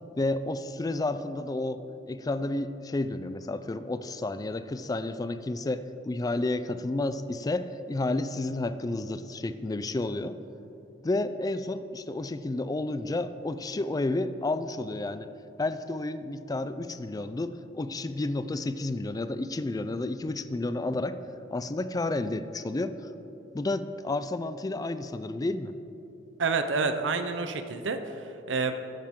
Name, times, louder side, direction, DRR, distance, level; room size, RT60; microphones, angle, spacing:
voice 1, 0.2-10.4 11.0-15.3 15.6-21.2 21.5-23.1 23.5-25.7, left 2 dB, 20° left, 12 dB, 0.4 m, -31 dB
voice 2, 26.4-28.7, right 4 dB, 85° right, 8 dB, 0.7 m, -29 dB
13.0 x 9.5 x 3.7 m, 2.9 s
head